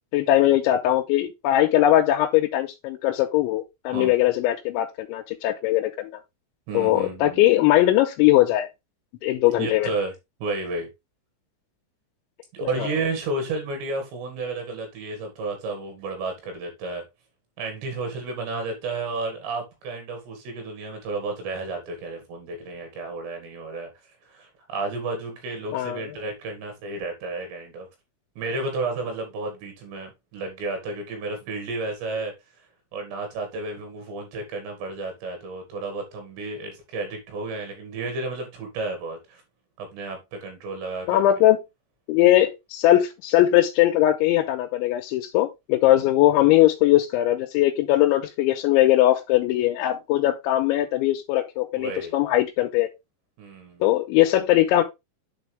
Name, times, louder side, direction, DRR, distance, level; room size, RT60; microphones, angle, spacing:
voice 1, 0.1-6.1 6.7-8.7 9.2-9.9 12.8-12.9 25.7-26.0 41.1-41.6 42.1-52.9 53.8-54.8, left 14 dB, 90° left, 3.1 m, -20 dB
voice 2, 6.7-7.5 9.6-10.1 10.4-10.9 12.5-17.0 17.6-23.9 24.2-27.9 28.4-32.3 32.9-39.4 39.8-41.2 51.8-52.2 53.4-53.8, right 3 dB, 70° right, 4.3 m, -32 dB
8.3 x 4.4 x 3.3 m
omnidirectional pair, 5.3 m